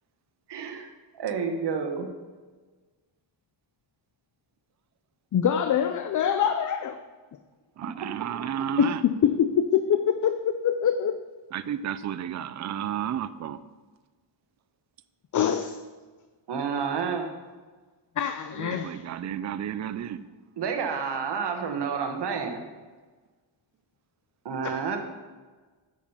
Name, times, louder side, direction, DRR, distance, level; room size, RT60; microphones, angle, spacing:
voice 1, 0.5-0.9 1.1-2.1 8.0-8.1 16.5-17.3 20.6-22.6 24.4-25.0, right 6 dB, 60° right, 5 dB, 1.3 m, -29 dB
voice 2, 5.3-7.0 8.8-11.2 15.3-15.8 18.2-19.0 24.6-24.7, left 8 dB, 45° left, 9 dB, 0.4 m, -24 dB
voice 3, 7.8-9.0 11.5-13.6 18.6-20.3, right 9 dB, 40° right, 13 dB, 0.4 m, -32 dB
9.0 x 7.2 x 5.6 m, 1.4 s
wide cardioid pair, 160°, 46 cm